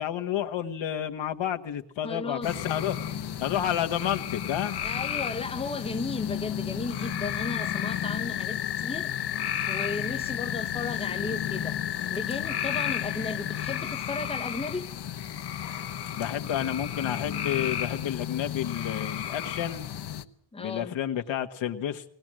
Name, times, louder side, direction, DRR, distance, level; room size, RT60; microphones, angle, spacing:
voice 1, 0.0-3.0 3.4-4.8 16.1-19.8 20.6-22.1, left 10 dB, 75° left, 1.6 m, -30 dB
voice 2, 2.0-2.5 4.8-9.2 9.7-15.0 20.5-21.0, left 3 dB, 15° left, 1.0 m, -35 dB
sound 1, 2.4-20.2, left 10 dB, 60° left, 1.2 m, -32 dB
19.5 x 18.5 x 7.6 m
cardioid pair, 75°, 45 cm